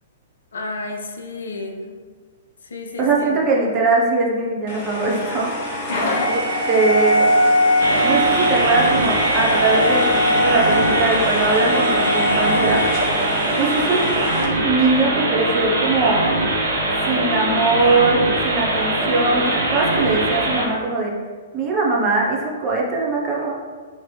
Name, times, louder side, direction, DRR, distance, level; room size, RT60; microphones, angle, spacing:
voice 1, 0.5-2.0 2.6-3.4 5.9-6.7 9.9-10.0, left 2 dB, 70° left, 3 dB, 0.4 m, -31 dB
voice 2, 3.0-5.9 6.3-6.4 6.7-7.3 8.0-12.8 13.6-14.2 14.6-16.2 17.0-21.1 21.5-23.5, right 3 dB, 30° right, -3 dB, 0.8 m, -21 dB
sound 1, 4.7-14.5, equal, 45° left, 0.8 m, -21 dB
sound 2, 7.8-20.6, right 1 dB, 70° right, 0.7 m, -22 dB
3.0 x 2.9 x 3.3 m, 1.6 s
figure-of-eight pair, 110°, 0 cm